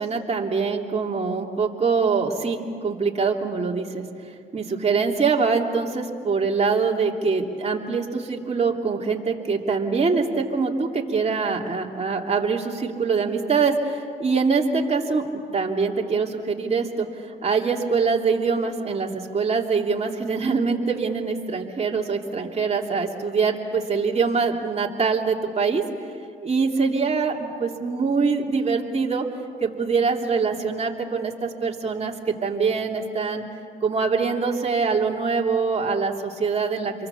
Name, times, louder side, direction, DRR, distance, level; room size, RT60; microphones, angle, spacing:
voice 1, 0.0-4.0 4.5-17.1 17.4-25.8 26.4-29.3 29.6-33.4 33.8-36.9, right 5 dB, 35° right, 0 dB, 3.0 m, -24 dB
28.5 x 23.0 x 7.1 m, 2.2 s
cardioid pair, 90°, 20 cm